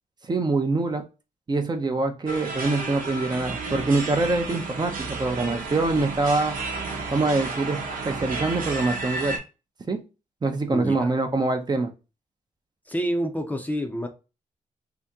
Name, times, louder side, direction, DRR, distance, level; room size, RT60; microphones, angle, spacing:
voice 1, 0.3-1.0 1.5-6.5 7.1-9.4 9.9-10.0 10.4-11.9, right 3 dB, 30° right, 0.6 m, -24 dB
sound 1, 2.3-9.4, right 3 dB, 80° right, 0.9 m, -33 dB
sound 2, 3.4-9.3, right 3 dB, 50° right, 1.1 m, -41 dB
voice 2, 10.7-11.1 12.9-14.1, equal, 10° left, 0.6 m, -28 dB
2.8 x 2.7 x 3.5 m
cardioid pair, 95°, 14 cm